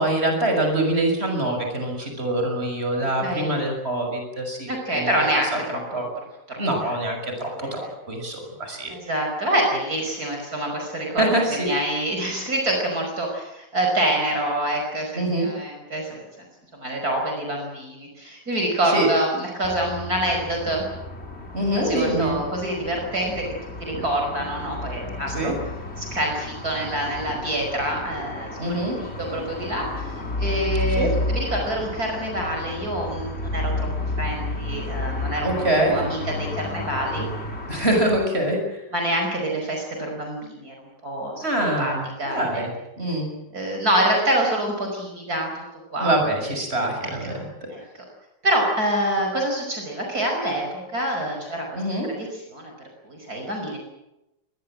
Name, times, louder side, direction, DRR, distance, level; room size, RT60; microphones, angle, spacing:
voice 1, 0.0-5.3 5.9-6.0 6.6-8.9 11.2-11.7 15.1-15.5 18.9-19.1 21.5-22.4 25.3-25.6 28.6-29.0 31.0-31.1 35.4-36.0 37.7-38.8 41.4-42.7 43.0-43.3 46.0-47.7 51.7-52.1, right 1 dB, 35° right, 3 dB, 6.8 m, -24 dB
voice 2, 4.7-6.1 6.5-6.6 7.6-7.7 8.9-16.5 16.7-20.8 21.7-23.4 23.9-25.5 26.0-33.9 34.2-37.3 38.9-41.4 41.8-41.9 42.2-42.6 43.5-45.5 45.9-46.1 47.2-47.4 47.7-47.8 48.4-51.7 52.1-52.7 53.0-53.8, right 1 dB, 55° right, 1 dB, 5.9 m, -26 dB
sound 1, 19.6-38.3, left 2 dB, 35° left, 3.2 m, -32 dB
24.5 x 21.0 x 7.6 m, 0.92 s
omnidirectional pair, 2.0 m